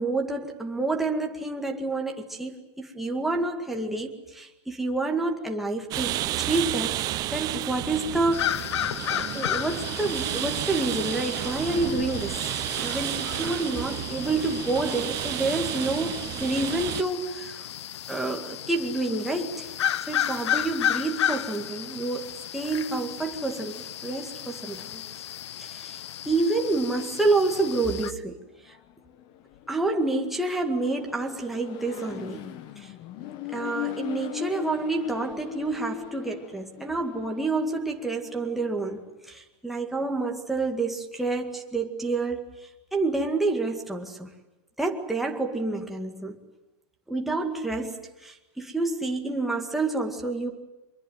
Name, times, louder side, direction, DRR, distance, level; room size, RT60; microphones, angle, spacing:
voice 1, 0.0-7.0 7.3-8.7 9.3-17.7 18.1-19.7 20.1-25.0 25.6-26.0 26.3-28.4 28.7-28.8 29.7-32.9 33.5-44.3 44.8-46.4 47.1-50.5, right 3 dB, ahead, 1 dB, 2.2 m, -28 dB
sound 1, 5.9-17.0, right 15 dB, 25° right, 0.8 m, -32 dB
sound 2, 8.3-28.1, left 11 dB, 80° left, 0.9 m, -33 dB
Accelerating revving vroom, 28.6-39.0, left 11 dB, 30° left, 1.6 m, -39 dB
25.0 x 22.5 x 9.2 m, 1.0 s
supercardioid pair, 160°, 14 cm